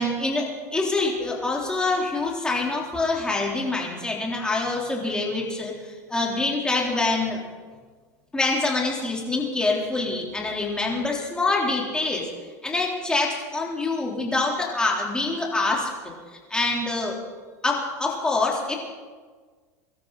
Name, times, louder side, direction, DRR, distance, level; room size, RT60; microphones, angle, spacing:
voice 1, 0.0-7.4 8.3-12.3 12.6-15.9 16.3-17.2 17.6-18.8, left 3 dB, 10° left, -2 dB, 3.9 m, -25 dB
24.5 x 13.0 x 4.2 m, 1.5 s
supercardioid pair, 120°, 9 cm